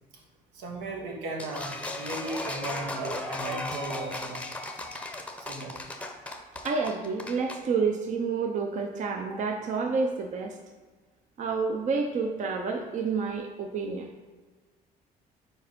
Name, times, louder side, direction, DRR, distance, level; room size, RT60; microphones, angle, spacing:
voice 1, 0.5-4.4 5.4-5.8, right 2 dB, 85° right, 0 dB, 1.4 m, -36 dB
sound 1, 1.4-7.6, left 2 dB, 5° left, 0.7 m, -36 dB
voice 2, 6.6-10.6 11.4-14.1, right 4 dB, 45° right, 3 dB, 0.6 m, -29 dB
4.5 x 4.3 x 5.3 m, 1.4 s
cardioid pair, 110°, 17 cm